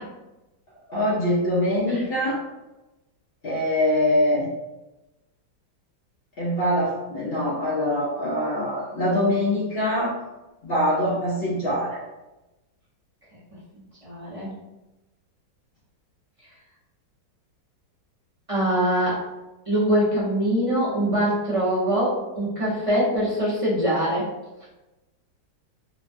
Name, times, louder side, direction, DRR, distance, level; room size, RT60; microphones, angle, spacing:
voice 1, 0.9-2.4 3.4-4.5 6.4-10.1 10.6-12.0, left 1 dB, 50° left, -9 dB, 0.7 m, -23 dB
voice 2, 14.0-14.5 18.5-19.2 19.7-24.3, equal, 30° right, -9 dB, 0.6 m, -23 dB
3.1 x 2.2 x 2.6 m, 1.0 s
omnidirectional pair, 1.9 m